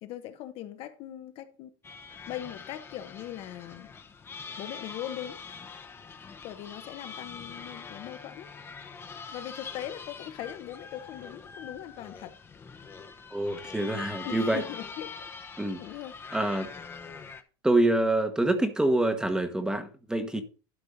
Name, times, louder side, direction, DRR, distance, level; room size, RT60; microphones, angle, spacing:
voice 1, 0.0-1.7 2.3-3.9 4.6-5.4 6.4-8.5 9.3-12.4 13.8-13.9 14.2-15.3 15.8-16.2 20.3-20.4, left 12 dB, 45° left, 1.0 m, -40 dB
sound 1, 1.8-17.4, left 5 dB, 20° left, 0.9 m, -44 dB
voice 2, 13.3-14.6 15.6-15.8 16.3-16.7 17.6-20.4, right 1 dB, 5° right, 1.2 m, -26 dB
12.0 x 4.4 x 5.3 m
supercardioid pair, 135°, 13 cm